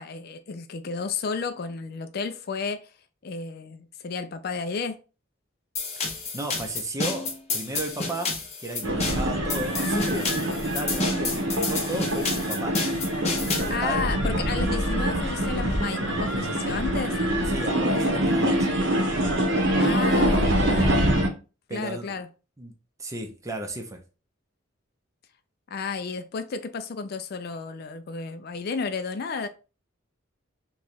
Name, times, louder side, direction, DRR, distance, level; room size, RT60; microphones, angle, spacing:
voice 1, 0.0-2.9 3.2-5.0 13.7-17.2 19.8-21.1 21.7-22.3 25.7-29.5, left 5 dB, 50° left, 0.4 m, -32 dB
sound 1, 5.8-13.7, left 3 dB, 35° left, 0.8 m, -30 dB
voice 2, 6.3-12.8 13.5-14.0 17.5-18.7 21.7-22.2 22.6-22.7 23.0-24.0, right 1 dB, 15° right, 0.6 m, -34 dB
sound 2, 8.8-21.3, right 1 dB, 70° right, 1.0 m, -25 dB
3.1 x 2.3 x 4.0 m
head